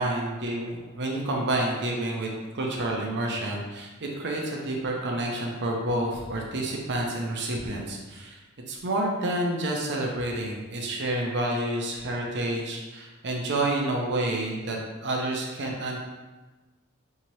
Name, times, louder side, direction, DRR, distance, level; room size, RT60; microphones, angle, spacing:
voice 1, 0.0-8.4 8.7-16.0, right 1 dB, 55° right, -1 dB, 0.7 m, -29 dB
5.6 x 2.8 x 3.1 m, 1.2 s
head